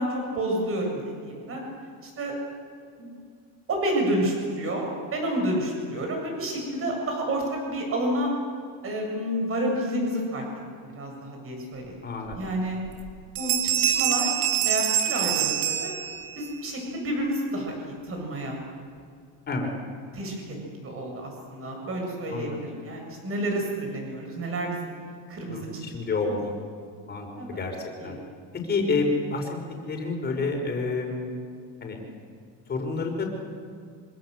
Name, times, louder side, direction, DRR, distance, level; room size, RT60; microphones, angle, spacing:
voice 1, 0.0-1.6 2.0-2.3 3.0-3.1 3.7-8.3 8.8-10.4 10.8-12.0 12.3-12.8 13.4-14.4 14.6-15.9 16.4-18.6 20.1-20.6 20.8-24.9 25.3-25.9 27.4-27.6 28.0-28.2, right 1 dB, 35° right, 1 dB, 7.7 m, -30 dB
voice 2, 12.0-12.4 19.5-19.7 22.3-22.6 25.5-26.6 27.1-28.2 28.6-29.6 29.9-31.3 31.8-32.0 32.7-33.4, left 3 dB, 25° left, 2 dB, 5.5 m, -29 dB
sound 1, 12.3-12.4 12.9-13.1 13.4-16.5, right 10 dB, 85° right, 2.8 m, -25 dB
26.0 x 25.5 x 8.0 m, 2.2 s
cardioid pair, 145°, 38 cm